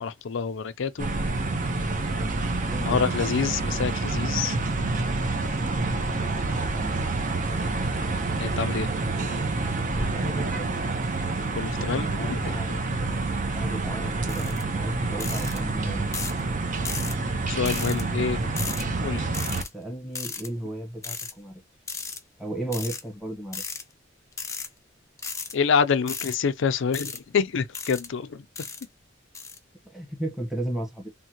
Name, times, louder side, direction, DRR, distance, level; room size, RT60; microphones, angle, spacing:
voice 1, 0.0-1.1 2.8-4.6 8.4-8.9 11.5-12.8 17.5-18.4 19.0-19.3 25.5-28.4, left 6 dB, 65° left, 0.5 m, -27 dB
sound 1, 1.0-19.6, right 3 dB, 40° right, 0.7 m, -28 dB
voice 2, 2.6-3.2 6.5-7.0 10.1-10.8 11.7-16.0 19.7-21.5 22.4-23.6 29.8-31.1, right 1 dB, ahead, 1.0 m, -35 dB
sound 2, 14.3-14.6 15.2-15.6 16.1-16.4 16.8-17.1 17.6-18.0 18.6-18.8 19.3-19.7 20.1-20.5 21.0-21.3 21.9-22.2 22.7-23.0 23.5-23.8 24.3-24.7 25.2-25.5 26.1-26.4 26.9-27.2 27.7-28.1 28.6-28.8 29.3-29.6, left 5 dB, 15° left, 0.6 m, -35 dB
3.6 x 2.2 x 2.8 m
head